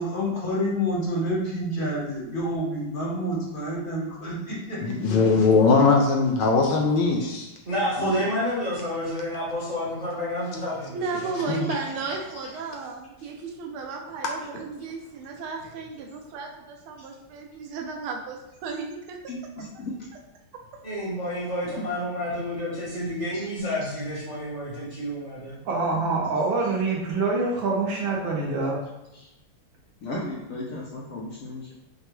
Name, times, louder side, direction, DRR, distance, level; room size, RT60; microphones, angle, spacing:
voice 1, 0.0-5.2, equal, 45° left, -5 dB, 0.6 m, -28 dB
voice 2, 4.8-7.5 8.0-8.1 11.5-11.7, left 4 dB, 75° left, 1 dB, 1.1 m, -20 dB
voice 3, 7.7-11.0 20.8-25.5, equal, 40° right, -8 dB, 0.6 m, -29 dB
voice 4, 10.9-19.2, right 4 dB, 85° right, 1 dB, 1.4 m, -34 dB
voice 5, 19.3-20.1 21.8-21.9 23.3-23.5 25.6-26.2 29.1-29.3 30.0-31.7, left 1 dB, 90° left, -5 dB, 0.7 m, -36 dB
voice 6, 25.6-28.9, right 3 dB, 70° right, -2 dB, 1.6 m, -25 dB
5.3 x 2.2 x 3.0 m, 0.93 s
omnidirectional pair, 2.3 m